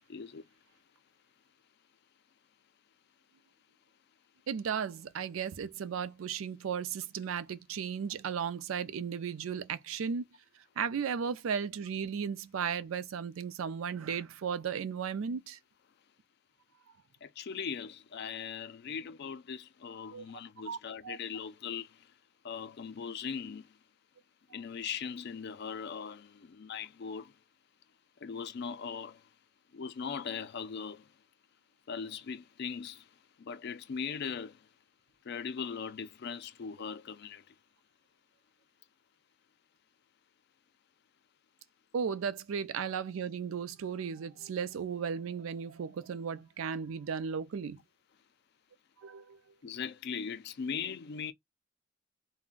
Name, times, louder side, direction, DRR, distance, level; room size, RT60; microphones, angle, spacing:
voice 1, 0.1-0.4 17.2-22.1 22.4-23.8 24.5-27.3 28.2-29.2 29.7-31.1 31.9-33.1 33.4-34.7 35.2-37.5 49.6-51.3, left 6 dB, 55° left, 0.4 m, -39 dB
voice 2, 4.5-10.3 10.8-15.6 20.1-20.3 20.7-20.8 21.0-21.2 41.9-47.8 49.0-49.4, right 7 dB, 75° right, 0.4 m, -35 dB
2.5 x 2.1 x 3.7 m
head